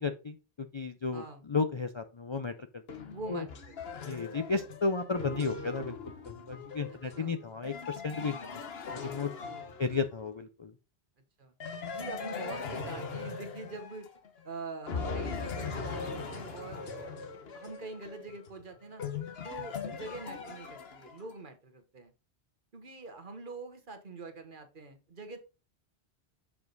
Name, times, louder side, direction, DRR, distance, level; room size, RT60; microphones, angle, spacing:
voice 1, 0.0-1.2 1.5-2.8 3.3-3.4 4.1-8.6 9.0-9.3 9.8-10.7, left 4 dB, 40° left, 8 dB, 0.4 m, -33 dB
voice 2, 1.1-1.4 3.1-4.1 6.9-7.4 9.4-9.7 11.4-11.5 11.9-14.1 14.4-17.2 17.5-19.0 19.4-22.1 22.7-25.4, right 3 dB, 50° right, 7 dB, 1.3 m, -44 dB
sound 1, 2.9-10.3 11.6-14.5 14.9-21.3, left 5 dB, 70° left, 1.2 m, -40 dB
7.2 x 4.8 x 3.9 m, 0.30 s
omnidirectional pair, 1.1 m